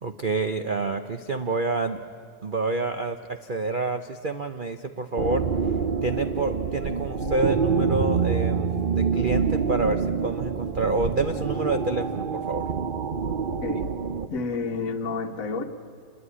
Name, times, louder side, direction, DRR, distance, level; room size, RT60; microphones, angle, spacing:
voice 1, 0.0-2.0 2.4-5.5 6.0-12.7, right 3 dB, 90° right, 8 dB, 0.4 m, -28 dB
sound 1, 5.2-14.3, right 5 dB, 45° right, 0.6 m, -26 dB
voice 2, 13.6-13.9 14.3-15.6, left 4 dB, 45° left, 3 dB, 1.6 m, -30 dB
28.0 x 21.0 x 9.9 m, 2.4 s
omnidirectional pair, 2.2 m